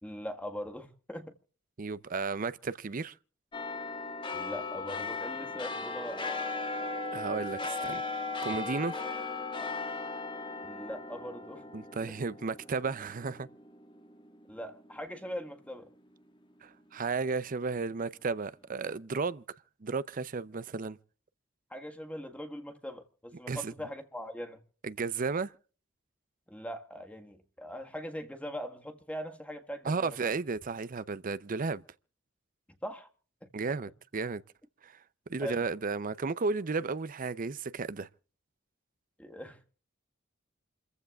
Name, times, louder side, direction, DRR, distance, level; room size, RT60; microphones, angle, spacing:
voice 1, 0.0-1.3 4.3-6.2 10.6-11.6 14.5-15.9 21.7-24.6 26.5-30.2 32.8-33.1 33.4-33.5 35.4-35.6 39.2-39.7, equal, 5° left, 1.6 m, -41 dB
voice 2, 1.8-3.1 7.1-8.0 8.4-9.0 11.7-13.5 16.6-19.4 19.8-21.0 23.5-23.7 24.8-25.5 29.8-31.8 33.5-34.4 34.8-35.0 35.3-38.1, right 4 dB, 45° right, 0.6 m, -33 dB
sound 1, 3.5-14.3 14.7-14.8, left 3 dB, 25° left, 2.0 m, -37 dB
29.0 x 15.0 x 2.4 m
head